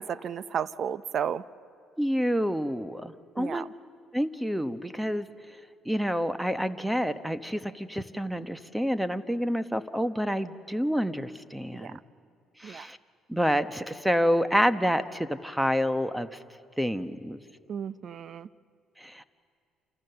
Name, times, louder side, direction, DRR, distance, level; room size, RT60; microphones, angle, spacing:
voice 1, 0.0-1.4 3.4-3.7 11.8-12.0 12.6-12.9 17.7-18.5, right 8 dB, 55° right, 16 dB, 0.7 m, -33 dB
voice 2, 2.0-3.6 4.1-5.3 5.8-12.0 12.6-13.0 13.3-16.4 16.8-17.4 19.0-19.2, equal, 5° right, 11 dB, 1.1 m, -28 dB
29.0 x 28.0 x 6.9 m, 2.5 s
supercardioid pair, 80°, 0 cm